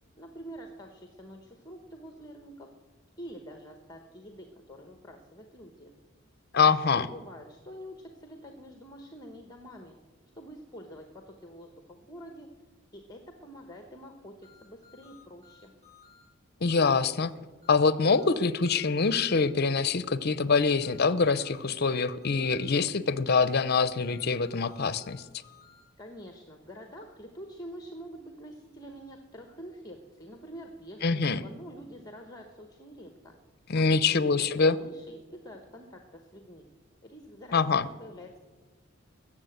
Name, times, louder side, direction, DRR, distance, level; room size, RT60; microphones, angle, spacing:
voice 1, 0.2-2.7 3.2-5.9 6.5-10.0 10.3-12.5 12.9-15.7 26.0-33.4 33.7-36.7 37.0-38.4, equal, 20° left, 5 dB, 1.0 m, -46 dB
voice 2, 6.5-7.1 16.6-17.3 17.7-25.2 31.0-31.4 33.7-34.8 37.5-37.9, left 4 dB, 50° left, 16 dB, 0.6 m, -24 dB
sound 1, 14.4-16.2 17.6-19.4 20.8-22.6 24.0-25.8, left 7 dB, 50° right, 6.5 m, -57 dB
20.5 x 7.5 x 7.9 m, 1.3 s
head